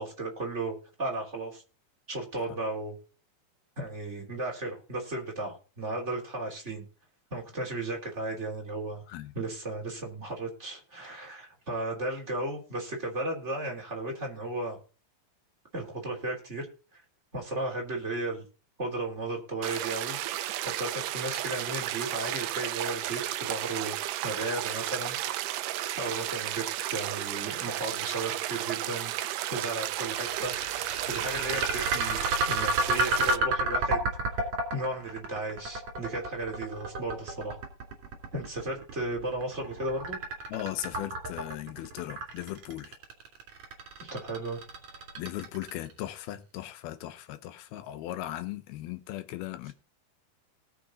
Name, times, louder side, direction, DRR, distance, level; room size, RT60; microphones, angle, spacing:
voice 1, 0.0-1.6 2.1-3.0 3.8-6.8 7.3-9.0 9.3-14.8 15.7-16.7 16.9-17.0 17.3-18.4 18.8-20.2 20.6-24.0 24.2-25.2 26.0-34.1 34.3-37.6 38.3-40.2 44.0-44.6, right 2 dB, 20° right, 2.9 m, -35 dB
sound 1, 19.6-33.4, right 14 dB, 75° right, 2.1 m, -33 dB
sound 2, 29.8-45.9, right 2 dB, 50° right, 4.0 m, -31 dB
voice 2, 40.5-42.9 45.2-49.7, left 14 dB, 90° left, 2.9 m, -38 dB
18.5 x 6.6 x 3.9 m
omnidirectional pair, 4.3 m